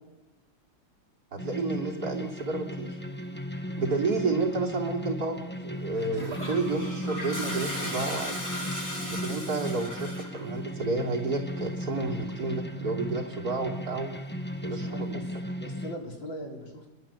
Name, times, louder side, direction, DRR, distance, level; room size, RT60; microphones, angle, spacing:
voice 1, 1.3-2.9 3.8-8.4 9.1-14.1 14.6-15.2, right 3 dB, 50° right, 0 dB, 3.7 m, -31 dB
sound 1, 1.4-16.0, equal, 5° left, 1.0 m, -36 dB
Laughter, 5.8-6.6 6.9-8.3 9.1-9.5 10.8-11.0 11.9-12.0, right 2 dB, 30° right, 3.3 m, -46 dB
Toilet flush, 6.1-10.4, left 1 dB, 40° left, 7.8 m, -36 dB
voice 2, 14.7-15.3 15.5-16.9, equal, 75° left, 0 dB, 4.6 m, -40 dB
29.5 x 21.5 x 7.3 m, 1.2 s
omnidirectional pair, 2.1 m